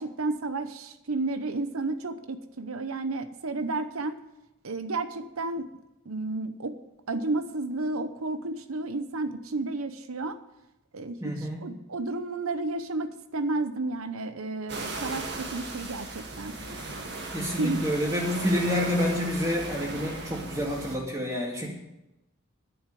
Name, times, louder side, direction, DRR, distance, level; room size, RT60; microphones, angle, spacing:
voice 1, 0.0-4.2 4.6-5.7 6.0-6.8 7.1-10.4 10.9-16.6 17.6-17.8, right 2 dB, 90° right, 11 dB, 0.9 m, -32 dB
voice 2, 11.2-11.6 17.3-21.7, left 1 dB, 15° right, -1 dB, 2.4 m, -28 dB
sound 1, 14.7-21.0, right 2 dB, 55° right, 1.8 m, -37 dB
11.5 x 6.7 x 8.5 m, 0.92 s
head